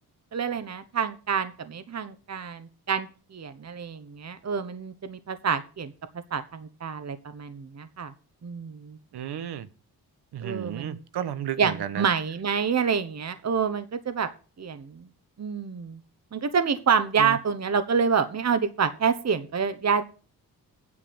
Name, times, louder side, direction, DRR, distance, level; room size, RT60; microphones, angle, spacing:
voice 1, 0.3-5.9 6.3-8.1 8.4-9.0 10.4-11.0 11.6-14.3 14.6-15.1 15.4-16.0 16.3-20.0, right 6 dB, 45° right, 1.2 m, -27 dB
voice 2, 9.1-9.7 10.3-12.0 17.2-17.4, right 10 dB, 80° right, 1.3 m, -33 dB
9.8 x 7.6 x 6.2 m
cardioid pair, 70°, 39 cm